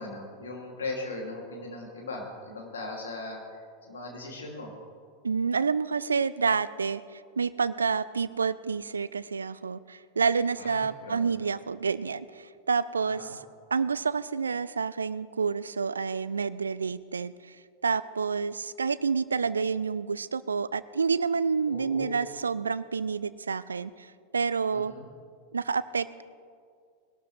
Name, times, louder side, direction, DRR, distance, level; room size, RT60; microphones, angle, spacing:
voice 1, 0.0-4.7 10.6-11.3 13.1-13.3 21.7-22.2 24.7-25.0, left 2 dB, 65° left, 0 dB, 2.8 m, -39 dB
voice 2, 5.2-7.0 7.4-13.4 13.7-17.3 17.8-24.1 24.3-24.9 25.5-26.2, right 5 dB, 75° right, 18 dB, 0.4 m, -28 dB
20.5 x 12.5 x 3.3 m, 2.2 s
figure-of-eight pair, 90°, 0 cm